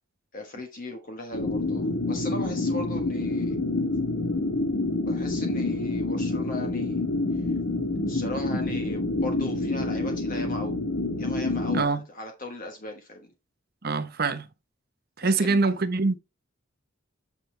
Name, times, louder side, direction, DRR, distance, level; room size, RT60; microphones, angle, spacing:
voice 1, 0.3-3.6 5.0-7.1 7.3-7.5 8.1-10.8 11.2-13.3 15.2-15.6, left 1 dB, 45° left, 1.3 m, -38 dB
sound 1, 1.3-11.8, left 2 dB, 75° left, 1.4 m, -27 dB
voice 2, 13.8-14.5 15.2-16.1, right 3 dB, 50° right, 0.9 m, -24 dB
8.8 x 6.1 x 3.3 m
head